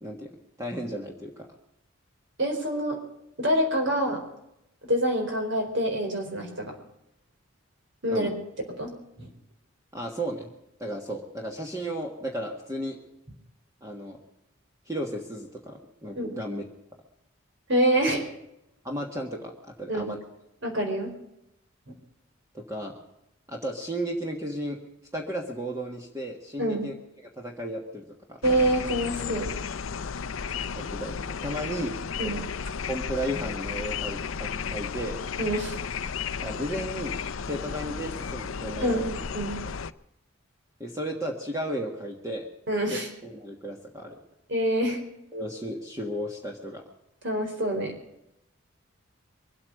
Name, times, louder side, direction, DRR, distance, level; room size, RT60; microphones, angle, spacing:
voice 1, 0.0-0.3 0.6-1.5 8.1-8.3 9.9-10.5 10.8-13.0 13.8-14.2 14.9-16.6 18.8-20.2 22.5-23.0 23.5-24.8 25.1-26.9 27.4-28.0 28.3-28.4 30.7-31.9 32.2-32.4 32.9-35.2 36.4-37.1 37.4-39.0 40.8-42.5 43.2-44.2 45.3-46.8, equal, 15° right, 1 dB, 1.5 m, -34 dB
voice 2, 2.4-3.0 3.4-4.2 4.8-6.8 8.0-8.3 8.8-8.9 9.2-9.3 16.1-16.3 17.7-18.2 19.9-20.1 20.6-21.1 26.6-26.9 28.4-29.5 32.2-32.4 35.4-35.8 38.8-39.6 42.7-43.1 44.5-45.0 47.2-47.9, right 1 dB, 55° right, 3 dB, 4.3 m, -26 dB
sound 1, 28.4-39.9, left 6 dB, 70° left, 0.6 m, -33 dB
23.5 x 8.7 x 6.4 m, 0.84 s
head